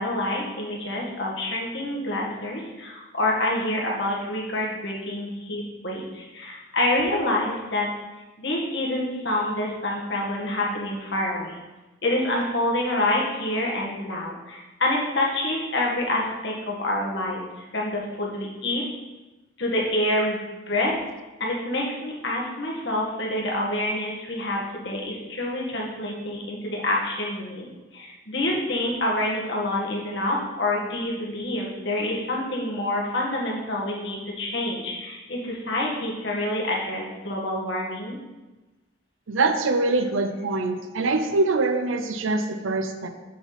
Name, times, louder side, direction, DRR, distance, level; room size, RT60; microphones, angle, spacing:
voice 1, 0.0-7.9 8.4-11.6 12.0-17.5 17.7-18.8 19.6-21.0 21.4-38.2, left 1 dB, 60° left, -2 dB, 1.8 m, -27 dB
voice 2, 39.3-43.1, right 3 dB, 80° right, 8 dB, 0.7 m, -24 dB
7.4 x 7.2 x 4.1 m, 1.1 s
head